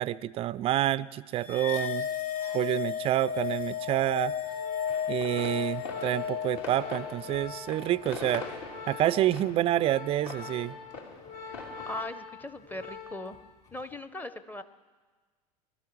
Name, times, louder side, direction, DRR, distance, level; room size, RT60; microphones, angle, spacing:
voice 1, 0.0-2.1 2.5-4.3 5.1-8.5 8.9-10.8, right 13 dB, 30° right, 18 dB, 0.4 m, -28 dB
sound 1, 1.4-8.0, left 8 dB, 75° left, 1.6 m, -34 dB
Organ, 3.4-13.4 13.7-14.0, left 5 dB, 35° left, 5.6 m, -44 dB
sound 2, 4.9-12.1, left 4 dB, 55° left, 3.0 m, -44 dB
voice 2, 11.8-13.4 13.7-14.6, left 1 dB, 10° left, 12 dB, 0.8 m, -39 dB
22.0 x 12.5 x 4.7 m, 1.4 s
hypercardioid pair, 90°, 20 cm